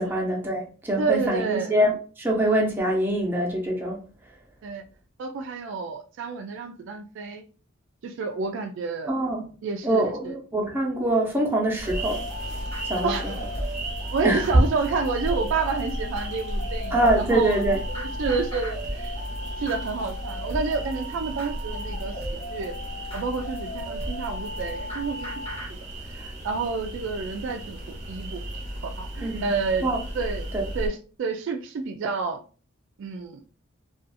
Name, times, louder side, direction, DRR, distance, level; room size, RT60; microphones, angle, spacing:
voice 1, 0.0-4.0 9.1-9.4 9.8-12.2 12.8-13.1 14.2-14.4 16.9-17.8 29.2-29.5 29.8-30.0 30.5-30.6, right 1 dB, 10° right, 0.7 m, -24 dB
voice 2, 1.0-1.8 4.6-4.8 5.2-7.4 8.0-9.1 9.6-10.3 13.0-13.2 14.1-17.6 17.9-19.2 19.6-22.1 22.5-22.7 23.1-25.3 25.7-28.4 28.8-29.9 30.1-30.5 30.7-32.4 33.0-33.4, right 4 dB, 65° right, 0.3 m, -29 dB
sound 1, 11.7-30.9, right 1 dB, 35° right, 1.0 m, -34 dB
sound 2, 11.8-25.7, left 1 dB, 30° left, 0.9 m, -37 dB
2.5 x 2.3 x 2.6 m
head